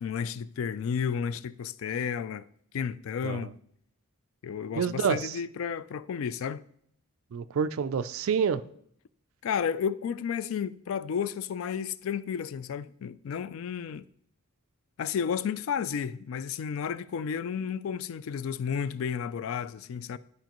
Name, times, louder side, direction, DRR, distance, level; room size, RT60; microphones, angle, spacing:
voice 1, 0.0-2.4 2.7-3.5 4.4-6.6 9.4-14.1 15.0-20.2, left 7 dB, 60° left, 0.3 m, -32 dB
voice 2, 4.8-5.4 7.3-8.6, right 6 dB, 65° right, 0.4 m, -28 dB
11.5 x 5.1 x 3.0 m
head